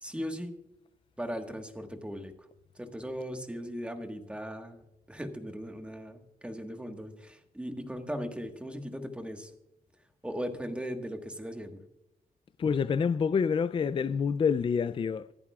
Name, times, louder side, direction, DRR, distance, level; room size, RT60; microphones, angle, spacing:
voice 1, 0.0-0.5 1.2-2.3 2.7-9.5 10.2-11.8, equal, 5° right, 1.4 m, -38 dB
voice 2, 12.6-15.3, left 6 dB, 35° left, 0.4 m, -27 dB
25.5 x 8.6 x 2.4 m
wide cardioid pair, 130°, 16 cm